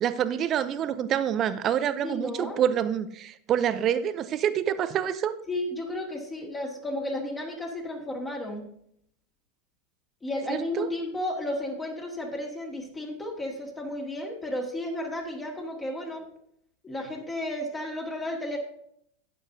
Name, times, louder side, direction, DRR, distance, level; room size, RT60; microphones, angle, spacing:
voice 1, 0.0-5.3 10.5-10.9, right 9 dB, 35° right, 13 dB, 0.7 m, -27 dB
voice 2, 2.0-2.6 5.5-8.7 10.2-16.3 16.8-18.6, left 1 dB, 15° left, 0 dB, 2.1 m, -33 dB
12.0 x 9.4 x 2.8 m, 0.70 s
figure-of-eight pair, 85°, 0 cm